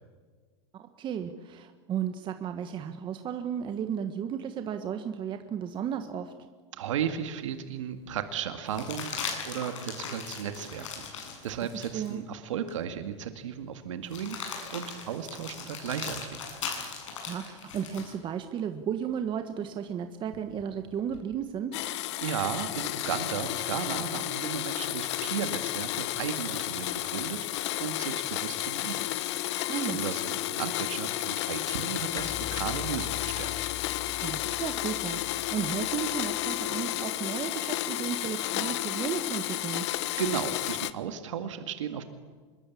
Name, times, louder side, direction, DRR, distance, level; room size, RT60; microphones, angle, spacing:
voice 1, 0.7-6.3 11.7-12.2 17.2-21.7 29.7-30.0 34.2-39.9, right 8 dB, 30° right, 7 dB, 1.5 m, -34 dB
voice 2, 6.7-11.1 11.4-16.4 22.2-29.1 29.8-33.7 40.2-42.0, right 8 dB, 85° right, 8 dB, 1.9 m, -35 dB
sound 1, 7.1-7.2 8.7-12.1 12.7-12.8 14.1-18.2 20.3-21.2, left 6 dB, 90° left, 7.7 m, -39 dB
Domestic sounds home sounds, 21.7-40.9, left 16 dB, 65° left, 1.2 m, -32 dB
sound 2, 32.2-36.9, left 10 dB, 25° left, 0.8 m, -43 dB
25.5 x 22.0 x 8.6 m, 1.5 s
supercardioid pair, 125°, 16 cm